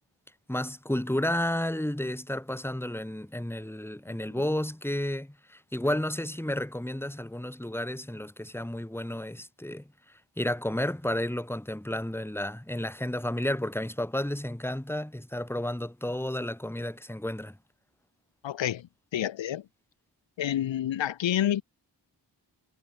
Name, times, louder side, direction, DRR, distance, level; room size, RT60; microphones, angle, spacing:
voice 1, 0.5-9.8 10.4-17.5, left 1 dB, 5° left, 1.6 m, -32 dB
voice 2, 18.4-19.7 20.4-21.6, left 11 dB, 85° left, 0.6 m, -29 dB
cardioid pair, 45°, 44 cm